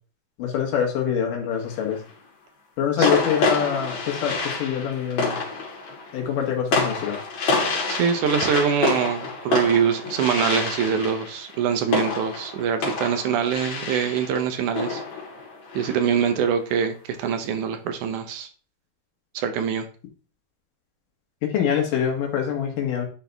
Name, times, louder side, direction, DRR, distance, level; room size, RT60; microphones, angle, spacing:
voice 1, 0.4-2.0 2.8-5.4 6.1-7.2 21.4-23.1, left 8 dB, 85° left, 2 dB, 3.1 m, -25 dB
sound 1, 1.5-2.1 3.0-16.4, left 3 dB, 60° left, 3.4 m, -28 dB
voice 2, 7.9-15.0 15.7-18.5 19.3-19.8, right 7 dB, 75° right, 8 dB, 2.3 m, -24 dB
10.0 x 4.0 x 3.4 m, 0.38 s
omnidirectional pair, 3.6 m